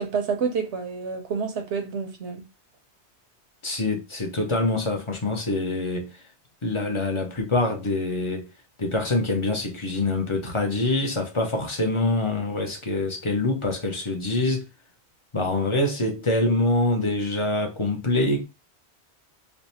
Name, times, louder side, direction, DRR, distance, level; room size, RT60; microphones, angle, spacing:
voice 1, 0.0-2.5, right 5 dB, 80° right, 1.1 m, -28 dB
voice 2, 3.6-6.2 6.6-8.5 8.8-14.7 15.3-18.4, left 2 dB, 30° left, 0.7 m, -25 dB
3.3 x 2.1 x 4.1 m
omnidirectional pair, 1.1 m